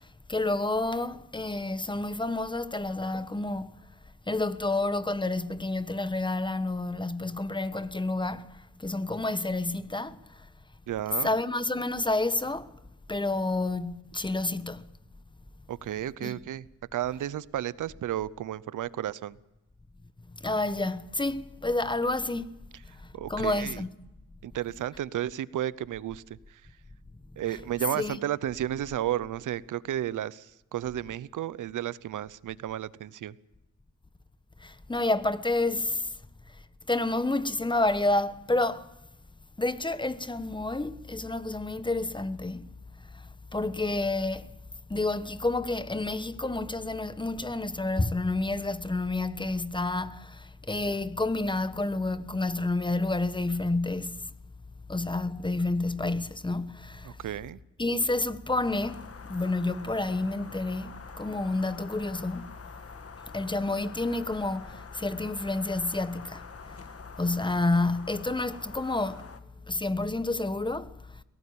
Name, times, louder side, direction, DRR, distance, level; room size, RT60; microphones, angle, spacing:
voice 1, 0.3-3.7 4.3-8.5 8.8-10.2 11.2-12.7 13.1-14.9 16.2-16.3 20.4-22.5 23.3-23.9 27.9-28.2 34.6-36.0 36.9-38.9 39.6-42.7 43.5-44.5 44.9-54.1 54.9-57.2 57.8-62.5 63.3-66.5 67.2-69.3 69.7-70.9, left 2 dB, 15° left, 1.2 m, -29 dB
voice 2, 10.9-11.4 15.7-16.6 16.9-19.4 23.1-23.8 24.4-26.6 27.4-33.3 57.0-57.6, right 12 dB, 90° right, 0.8 m, -33 dB
sound 1, 58.6-69.4, left 5 dB, 50° left, 1.8 m, -47 dB
22.5 x 17.5 x 8.6 m
cardioid pair, 80°, 30 cm